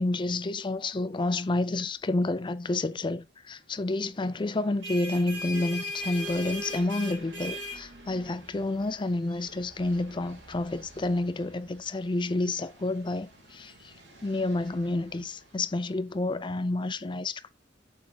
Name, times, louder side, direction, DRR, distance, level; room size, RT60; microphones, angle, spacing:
voice 1, 0.0-13.9 14.2-17.5, left 2 dB, 25° left, 0.5 m, -29 dB
sound 1, 4.6-15.9, left 1 dB, 70° right, 3.3 m, -42 dB
8.2 x 6.4 x 2.9 m
head